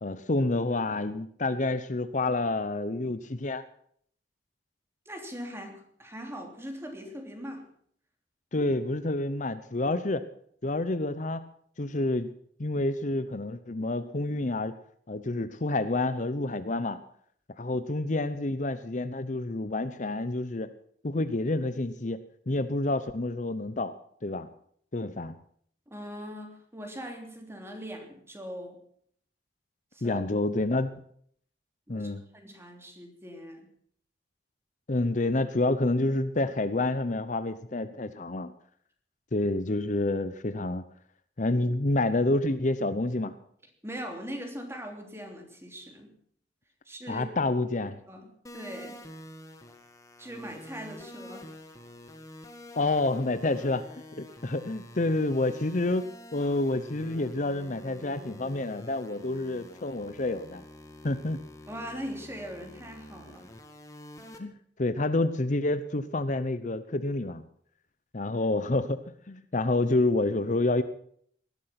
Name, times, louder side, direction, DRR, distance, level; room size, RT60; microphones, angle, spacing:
voice 1, 0.0-3.6 8.5-10.2 10.6-11.4 11.8-12.3 12.6-14.8 15.1-17.0 17.6-20.7 21.0-22.2 22.5-23.9 24.2-24.5 24.9-25.3 30.0-30.9 31.9-32.2 34.9-38.5 39.3-40.8 41.4-43.3 47.1-48.0 52.7-53.8 54.1-60.6 61.0-61.4 64.4-64.5 64.8-67.4 68.1-69.0 69.3-70.8, left 2 dB, 45° left, 12 dB, 0.8 m, -28 dB
voice 2, 5.0-7.7 25.9-28.8 29.9-30.2 31.9-33.7 43.8-46.2 46.8-47.2 48.1-49.0 50.2-51.5 61.7-63.5, equal, 15° right, 4 dB, 3.1 m, -41 dB
sound 1, 48.4-64.4, left 1 dB, 20° left, 1.9 m, -48 dB
19.0 x 12.0 x 5.9 m, 0.62 s
head